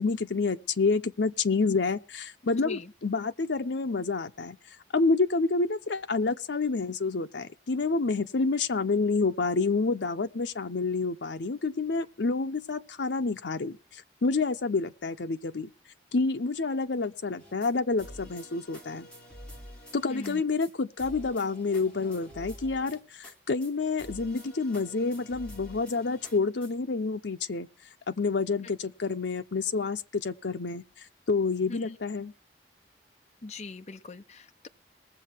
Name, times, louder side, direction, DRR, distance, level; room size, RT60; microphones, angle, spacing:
voice 1, 0.0-4.6 4.9-15.7 16.1-19.1 19.9-27.7 28.1-30.8 31.3-32.3, left 4 dB, 85° left, 0.7 m, -28 dB
sound 1, 17.4-17.7 18.0-20.4 20.6-20.7 21.0-23.3 23.6-23.7 24.0-26.7, equal, 5° left, 3.7 m, -47 dB
voice 2, 20.1-20.4 31.7-31.8 33.4-34.7, left 3 dB, 40° left, 0.7 m, -41 dB
20.5 x 7.5 x 4.5 m
head